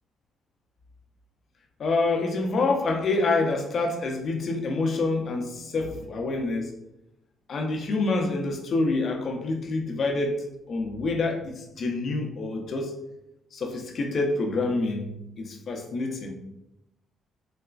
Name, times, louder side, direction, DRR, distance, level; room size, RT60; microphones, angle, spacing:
voice 1, 1.8-6.8 7.5-10.4 10.7-12.9 13.5-15.1 15.4-16.3, left 3 dB, 55° left, 2 dB, 0.6 m, -27 dB
4.0 x 2.1 x 2.4 m, 0.87 s
supercardioid pair, 60°, 0 cm